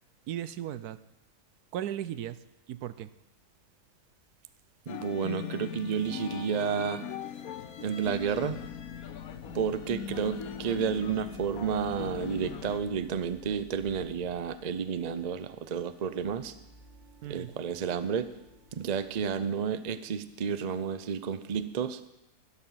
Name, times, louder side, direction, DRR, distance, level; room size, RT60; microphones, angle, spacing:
voice 1, 0.3-1.0 1.7-2.4 2.7-3.1 17.2-17.5, right 11 dB, 80° right, 14 dB, 1.2 m, -36 dB
sound 1, 4.9-12.8, left 9 dB, 70° left, 1.2 m, -40 dB
voice 2, 4.9-7.0 7.8-8.6 9.5-16.5 17.3-18.3 18.7-22.0, right 7 dB, 50° right, 12 dB, 0.5 m, -31 dB
sound 2, 8.0-19.4, equal, 20° left, 1.9 m, -54 dB
12.5 x 12.0 x 5.8 m, 0.90 s
omnidirectional pair, 1.7 m